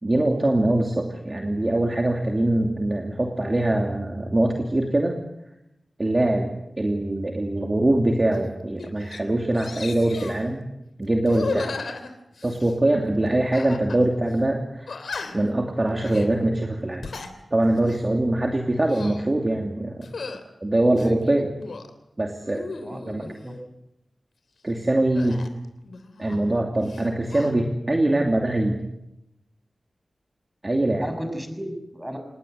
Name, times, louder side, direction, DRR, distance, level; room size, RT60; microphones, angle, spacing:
voice 1, 0.0-5.2 6.0-10.6 11.0-11.7 12.4-15.0 15.3-17.1 17.5-20.1 20.6-21.5 22.2-22.6 23.1-23.3 24.6-25.4 26.2-28.8 30.6-31.1, right 1 dB, 30° right, 2 dB, 2.8 m, -23 dB
sound 1, 8.3-8.5 8.8-9.2 9.5-10.4 11.2-12.8 13.5-14.0 14.3-14.4 14.9-15.5 16.0-16.3 16.8-17.3 17.8-18.0 18.7-19.3 20.0-20.4 20.9-21.9 22.4-23.4 25.2-26.6 26.8-27.5, left 4 dB, 85° left, 3.2 m, -36 dB
voice 2, 21.0-21.4 22.8-23.2 23.4-23.6 31.0-32.2, equal, 10° right, 6 dB, 6.3 m, -34 dB
27.5 x 20.0 x 8.1 m, 0.88 s
wide cardioid pair, 95°, 0 cm